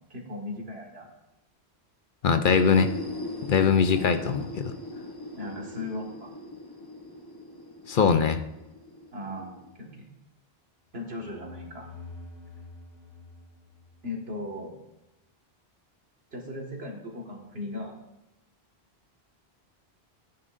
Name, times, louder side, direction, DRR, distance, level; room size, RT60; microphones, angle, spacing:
voice 1, 0.1-1.1 4.0-4.4 5.4-6.3 9.1-10.1 10.9-11.9 14.0-14.7 16.3-18.0, left 1 dB, 75° right, 0 dB, 2.1 m, -37 dB
voice 2, 2.2-2.9 3.5-4.4 7.9-8.4, left 6 dB, 60° left, 9 dB, 0.7 m, -21 dB
sound 1, 2.3-10.0, left 2 dB, 25° left, 1.0 m, -40 dB
sound 2, 10.9-14.5, left 3 dB, 40° right, 2.7 m, -47 dB
15.0 x 9.7 x 2.6 m, 0.94 s
omnidirectional pair, 1.0 m